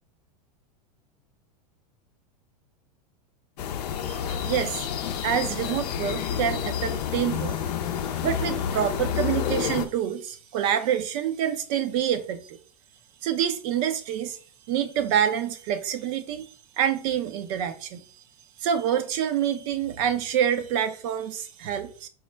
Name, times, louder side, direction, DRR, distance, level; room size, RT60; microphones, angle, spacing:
sound 1, 3.6-9.9, left 8 dB, 75° left, 0.5 m, -29 dB
voice 1, 4.0-4.9 5.2-7.8 8.2-12.6 13.2-14.4 14.7-16.5 16.8-18.0 18.6-22.1, right 9 dB, 55° right, 0.6 m, -27 dB
4.5 x 2.1 x 3.2 m
hypercardioid pair, 115°, 21 cm